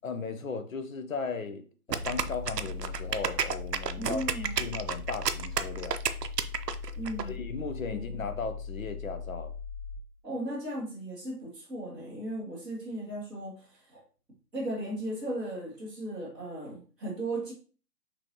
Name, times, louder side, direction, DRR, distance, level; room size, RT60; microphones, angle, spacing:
voice 1, 0.0-6.0 7.2-9.5, left 4 dB, 55° left, 0.8 m, -37 dB
sound 1, 1.9-7.2, right 7 dB, 80° right, 0.6 m, -31 dB
sound 2, 2.0-10.0, left 6 dB, 50° right, 0.9 m, -40 dB
voice 2, 3.9-4.6 6.9-7.4 7.9-8.2 10.2-14.0 14.5-17.5, right 1 dB, ahead, 1.0 m, -36 dB
5.3 x 3.2 x 2.9 m
figure-of-eight pair, 150°, 47 cm